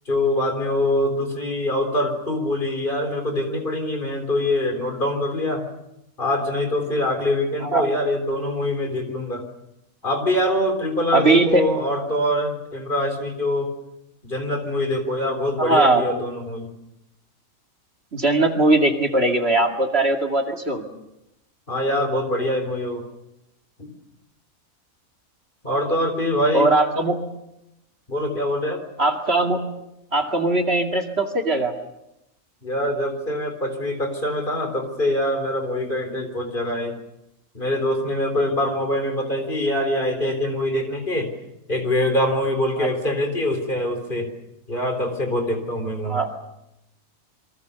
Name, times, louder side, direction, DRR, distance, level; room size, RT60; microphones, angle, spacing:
voice 1, 0.1-5.6 6.2-9.4 10.0-13.7 14.2-16.7 21.7-23.0 23.8-23.9 25.6-26.7 28.1-28.9 32.6-36.9 37.5-41.3 41.7-44.3 44.7-46.2, left 1 dB, 35° left, 5 dB, 4.0 m, -24 dB
voice 2, 11.1-11.6 15.6-16.0 18.1-20.8 26.5-27.2 29.0-29.6 30.1-31.7 42.8-42.9 46.0-46.3, right 2 dB, 45° right, 3 dB, 2.6 m, -20 dB
28.0 x 24.0 x 6.9 m, 0.86 s
omnidirectional pair, 1.5 m